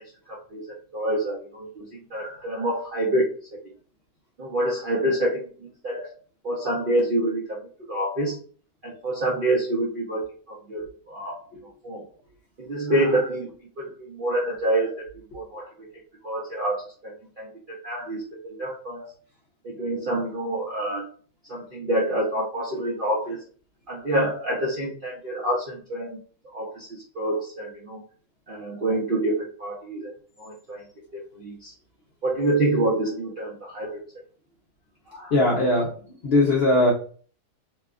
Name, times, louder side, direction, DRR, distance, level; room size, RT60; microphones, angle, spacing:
voice 1, 0.3-1.8 2.1-3.6 4.4-6.1 6.4-7.6 7.9-8.4 8.8-10.2 10.5-11.4 11.8-12.0 12.6-13.5 13.8-15.0 15.3-15.7 16.2-19.1 19.6-21.1 21.5-23.4 23.9-26.2 26.5-28.0 28.5-30.1 30.4-30.8 31.1-31.7 32.2-34.0 35.1-35.3, right 1 dB, 60° right, -4 dB, 0.5 m, -27 dB
voice 2, 35.3-35.9 36.2-36.9, left 1 dB, 65° left, -3 dB, 0.6 m, -19 dB
2.7 x 2.3 x 2.3 m, 0.42 s
omnidirectional pair, 1.7 m